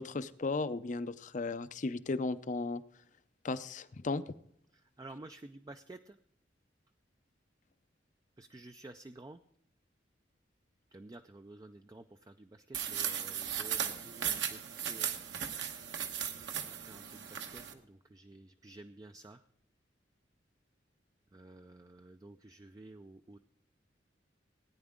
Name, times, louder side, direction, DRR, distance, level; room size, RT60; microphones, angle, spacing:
voice 1, 0.0-2.8 3.4-4.2, left 3 dB, 40° left, 14 dB, 0.5 m, -35 dB
voice 2, 4.7-6.2 8.4-9.4 10.9-15.2 16.6-19.4 21.3-23.4, right 2 dB, 20° right, 8 dB, 0.3 m, -52 dB
sound 1, 12.7-17.7, right 9 dB, 70° right, 1.1 m, -37 dB
18.0 x 9.8 x 3.6 m, 0.71 s
head